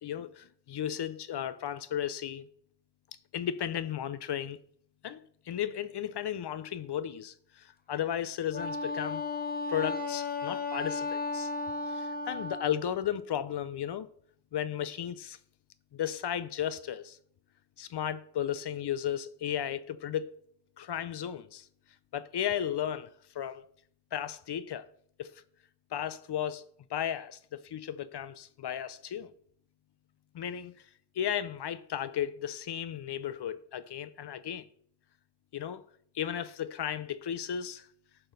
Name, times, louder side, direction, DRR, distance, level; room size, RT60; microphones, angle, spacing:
voice 1, 0.0-2.5 3.3-4.6 5.0-5.2 5.5-9.2 9.7-11.5 11.9-14.1 14.5-15.4 15.9-17.2 17.8-20.3 20.8-21.7 22.1-23.6 24.1-24.8 25.2-25.3 25.9-26.6 26.9-29.3 30.3-30.7 31.2-34.7 35.5-35.8 36.1-37.9, left 10 dB, 65° left, 0.6 m, -34 dB
Wind instrument woodwind instrument, 8.5-12.8, left 3 dB, 20° left, 0.8 m, -34 dB
11.5 x 4.5 x 5.2 m
wide cardioid pair, 110°, 44 cm